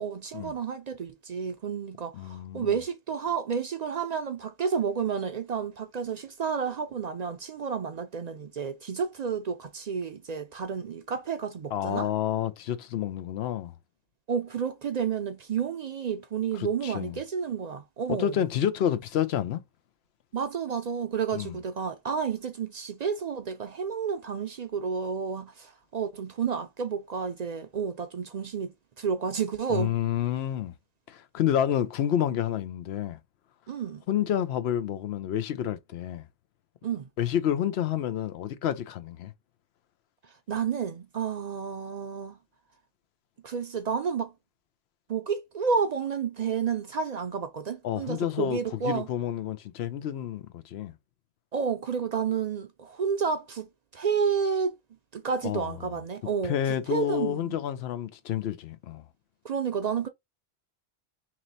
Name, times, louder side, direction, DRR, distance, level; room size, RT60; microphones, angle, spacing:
voice 1, 0.0-12.1 14.3-18.4 20.3-29.9 33.7-34.0 36.8-37.1 40.5-42.4 43.4-44.3 45.1-49.1 51.5-54.7 55.1-57.6 59.4-60.1, right 6 dB, 55° right, 0.5 m, -31 dB
voice 2, 2.1-2.7 11.7-13.7 16.5-17.2 18.1-19.6 21.4-21.5 29.7-30.7 31.1-33.2 34.1-36.2 37.2-39.3 47.8-50.9 55.4-55.7 56.4-59.0, left 10 dB, 90° left, 0.9 m, -29 dB
3.1 x 2.9 x 3.9 m
omnidirectional pair, 1.0 m